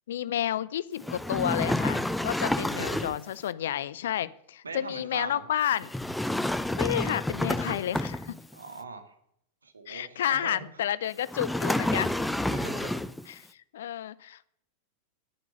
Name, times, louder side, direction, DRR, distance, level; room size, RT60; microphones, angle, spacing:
voice 1, 0.1-5.9 6.8-8.4 9.9-12.1 13.3-13.5 13.7-14.5, left 11 dB, 60° left, 19 dB, 0.6 m, -31 dB
sound 1, 1.0-3.3 5.8-8.5 11.3-13.2, left 1 dB, 5° left, 0.6 m, -29 dB
voice 2, 2.5-3.1 4.6-5.4 8.5-9.1 9.6-10.7 12.5-13.0, right 4 dB, 75° right, 7 dB, 1.9 m, -41 dB
11.0 x 10.5 x 6.7 m, 0.71 s
figure-of-eight pair, 90°, 0 cm